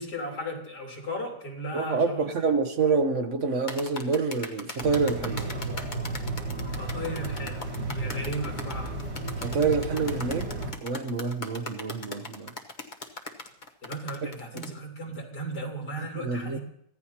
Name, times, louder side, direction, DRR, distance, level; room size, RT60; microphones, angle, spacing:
voice 1, 0.0-2.5 6.8-9.0 13.8-16.6, equal, 70° left, 4.3 m, -36 dB
voice 2, 1.7-5.5 9.4-10.5 10.8-12.5 16.2-16.6, right 4 dB, 50° right, 1.1 m, -27 dB
sound 1, 3.7-14.7, left 2 dB, 30° left, 1.1 m, -39 dB
sound 2, 4.8-10.7, right 2 dB, 75° right, 3.3 m, -33 dB
24.0 x 16.0 x 2.9 m
omnidirectional pair, 1.8 m